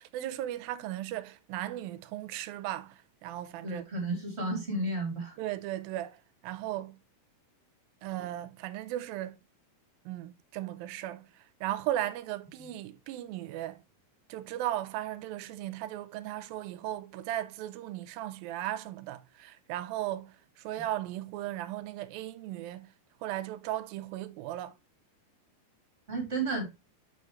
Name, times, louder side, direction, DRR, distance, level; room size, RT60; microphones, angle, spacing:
voice 1, 0.0-3.9 5.4-6.2 6.4-7.0 8.0-9.4 10.1-11.3 11.6-13.8 14.3-22.9 23.2-24.7, right 13 dB, 80° right, 2.4 m, -36 dB
voice 2, 3.6-5.3 20.8-20.9 26.1-26.7, right 2 dB, 20° right, 2.5 m, -32 dB
7.1 x 6.4 x 3.1 m
omnidirectional pair, 4.2 m